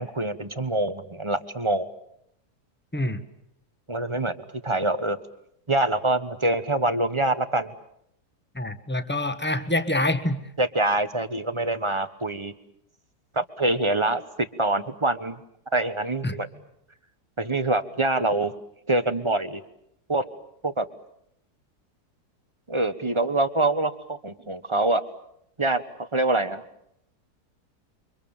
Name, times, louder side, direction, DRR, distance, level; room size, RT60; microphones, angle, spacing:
voice 1, 0.0-1.9 3.9-4.4 4.6-5.2 5.7-7.7 10.6-12.5 13.3-15.4 15.7-16.5 17.4-18.5 18.9-19.6 20.1-20.2 20.6-20.8 22.7-25.0 25.6-26.6, right 2 dB, 20° right, 11 dB, 1.1 m, -25 dB
voice 2, 2.9-3.2 8.5-10.4 16.2-16.4, left 1 dB, 5° left, 9 dB, 1.4 m, -26 dB
29.5 x 24.5 x 7.2 m, 0.75 s
omnidirectional pair, 1.7 m